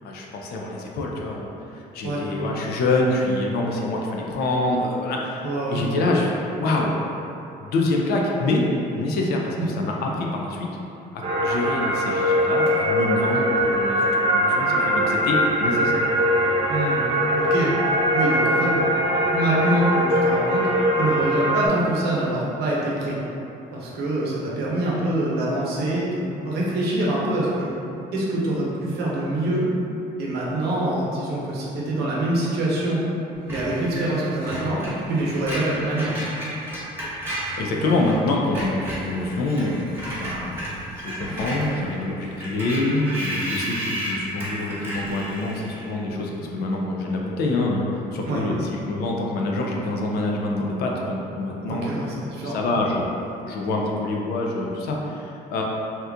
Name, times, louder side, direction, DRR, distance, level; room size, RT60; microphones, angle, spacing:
voice 1, 0.0-7.0 7.6-8.6 8.9-10.7 11.1-16.0 37.0-52.0 52.4-53.1 53.4-55.6, left 2 dB, 70° left, -1 dB, 0.5 m, -26 dB
voice 2, 5.4-5.8 9.6-9.7 16.7-17.0 17.4-17.7 18.1-18.7 19.3-20.7 21.0-23.2 23.7-27.7 28.1-29.7 30.2-33.0 33.5-34.8 35.1-36.2 48.2-48.4 51.7-52.6, right 1 dB, 75° right, -5 dB, 0.8 m, -25 dB
sound 1, 11.2-21.7, equal, 40° right, 0.8 m, -21 dB
Screech, 33.5-38.2 38.4-45.9, right 1 dB, 15° right, 1.1 m, -33 dB
2.9 x 2.3 x 3.5 m, 2.8 s
cardioid pair, 110°, 17 cm